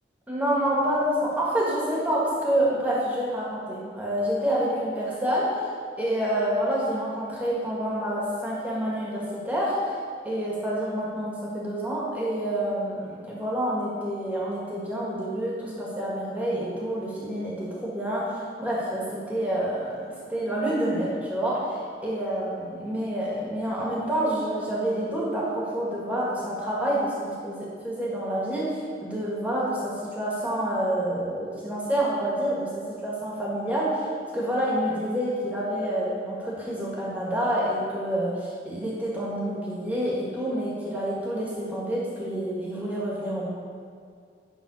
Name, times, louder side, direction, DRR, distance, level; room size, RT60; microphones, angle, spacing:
voice 1, 0.3-5.7 6.0-10.0 10.2-34.1 34.3-43.5, right 1 dB, 10° right, -6 dB, 1.6 m, -28 dB
11.0 x 3.8 x 5.4 m, 2.2 s
head